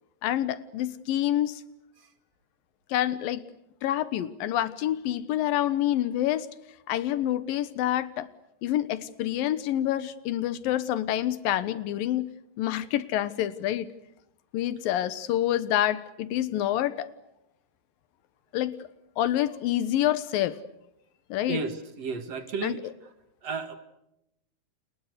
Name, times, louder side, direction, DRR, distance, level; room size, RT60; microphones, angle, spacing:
voice 1, 0.2-1.6 2.9-3.4 3.8-6.5 6.9-8.3 8.6-12.3 12.6-13.9 14.5-17.1 18.5-18.9 19.2-20.6 21.3-21.6 22.6-22.8, left 12 dB, 85° left, 15 dB, 2.9 m, -27 dB
voice 2, 21.5-22.9 23.4-23.8, right 4 dB, 50° right, 9 dB, 2.8 m, -33 dB
30.0 x 29.0 x 6.6 m, 0.85 s
omnidirectional pair, 4.0 m